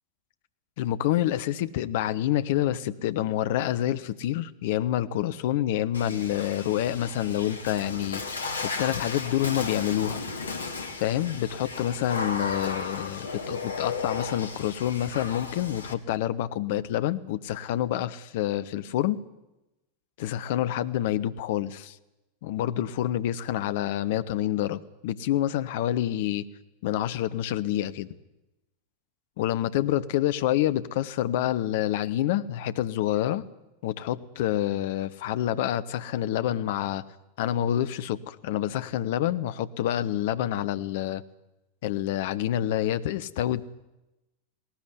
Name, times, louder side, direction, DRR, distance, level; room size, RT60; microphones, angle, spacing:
voice 1, 0.8-8.2 8.8-10.2 11.0-19.2 20.2-22.0 22.4-26.4 26.8-28.1 29.4-33.4 33.8-37.0 37.4-41.2 41.8-43.6, left 12 dB, 50° left, 13 dB, 0.9 m, -27 dB
Water / Splash splatter, 5.9-15.9, left 4 dB, 75° left, 1.9 m, -35 dB
19.0 x 18.0 x 9.8 m, 0.97 s
figure-of-eight pair, 90°, 0 cm